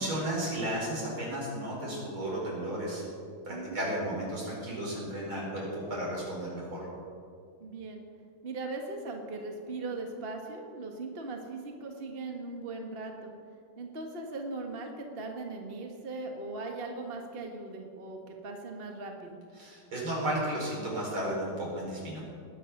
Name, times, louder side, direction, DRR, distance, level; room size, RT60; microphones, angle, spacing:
voice 1, 0.0-3.0 3.4-6.9 19.6-22.2, right 1 dB, 75° right, -4 dB, 5.6 m, -33 dB
voice 2, 3.5-3.9 7.6-8.0 8.4-13.3 13.8-19.4, right 3 dB, 30° right, 2 dB, 1.4 m, -39 dB
20.0 x 8.7 x 6.5 m, 2.3 s
omnidirectional pair, 2.3 m